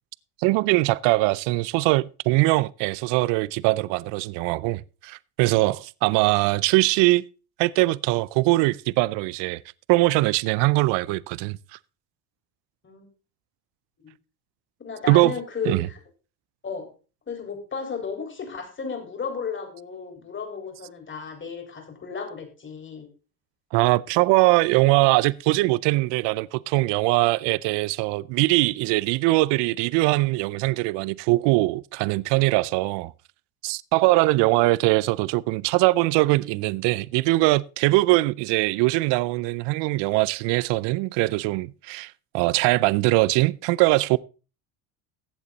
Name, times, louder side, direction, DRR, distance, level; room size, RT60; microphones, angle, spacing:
voice 1, 0.4-7.2 7.6-9.6 9.9-11.6 15.1-15.3 15.7-15.9 23.7-33.1 33.6-44.2, right 21 dB, 70° right, 0.6 m, -21 dB
voice 2, 14.8-16.0 16.6-16.9 17.3-23.1 34.2-34.4, left 5 dB, 25° left, 4.2 m, -34 dB
15.0 x 8.2 x 4.0 m
supercardioid pair, 105°, 45 cm